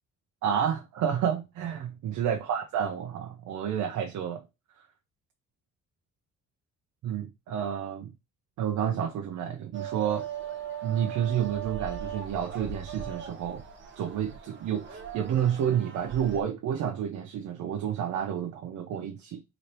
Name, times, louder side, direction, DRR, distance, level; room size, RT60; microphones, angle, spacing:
voice 1, 0.4-4.4 4.8-4.9 7.0-8.1 8.6-10.3 10.8-13.6 14.0-19.4, right 9 dB, 70° right, 0.7 m, -30 dB
sound 1, 9.7-16.4, right 8 dB, 40° right, 1.2 m, -39 dB
3.9 x 3.3 x 2.8 m
cardioid pair, 90°, 30 cm